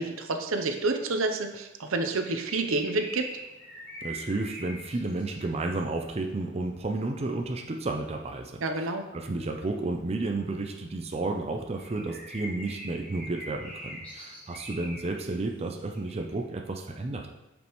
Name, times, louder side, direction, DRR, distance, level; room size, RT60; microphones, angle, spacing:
voice 1, 0.0-3.3 8.6-9.1, right 3 dB, 80° right, 6 dB, 0.8 m, -29 dB
sound 1, 2.2-16.5, right 1 dB, 5° left, 1.8 m, -45 dB
voice 2, 4.0-17.3, right 2 dB, 30° right, 3 dB, 0.5 m, -32 dB
8.2 x 5.2 x 3.1 m, 1.0 s
head